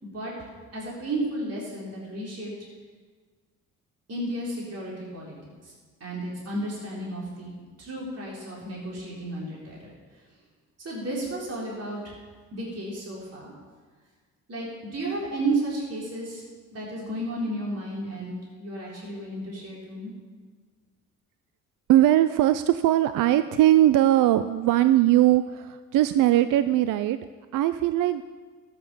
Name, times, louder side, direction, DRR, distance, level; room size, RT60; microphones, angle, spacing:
voice 1, 0.0-2.5 4.1-5.3 5.6-5.7 6.0-9.9 10.8-12.2 12.5-13.5 14.5-14.7 14.9-16.4 16.7-20.1, right 2 dB, 45° right, -5 dB, 4.3 m, -33 dB
voice 2, 21.9-27.2 27.5-28.2, right 13 dB, 60° right, 13 dB, 0.6 m, -20 dB
13.5 x 7.7 x 7.0 m, 1.5 s
hypercardioid pair, 50°, 35 cm